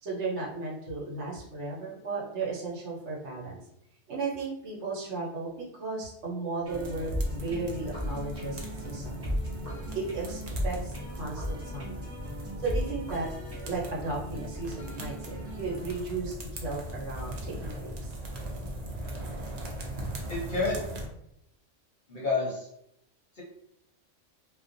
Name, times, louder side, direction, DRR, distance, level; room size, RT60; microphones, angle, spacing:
voice 1, 0.0-3.6 4.1-9.2 9.9-12.0 12.6-13.3 13.6-18.1, right 3 dB, 70° right, -4 dB, 1.1 m, -35 dB
sound 1, 6.6-16.0, equal, 15° right, 0.5 m, -37 dB
sound 2, 6.7-21.1, right 1 dB, 85° right, 0.3 m, -39 dB
voice 2, 20.3-20.8 22.1-22.7 23.4-23.5, left 3 dB, 50° left, -5 dB, 0.7 m, -29 dB
2.4 x 2.1 x 2.5 m, 0.77 s
omnidirectional pair, 1.3 m